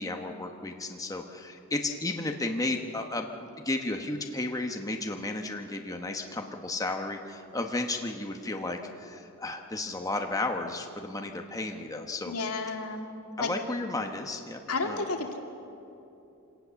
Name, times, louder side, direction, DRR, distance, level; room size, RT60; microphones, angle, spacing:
voice 1, 0.0-12.3 13.4-15.0, left 2 dB, 15° left, 3 dB, 1.2 m, -33 dB
voice 2, 12.3-13.0 13.4-13.5 14.7-15.4, left 3 dB, 80° left, 3 dB, 2.3 m, -31 dB
25.5 x 18.5 x 7.1 m, 2.9 s
head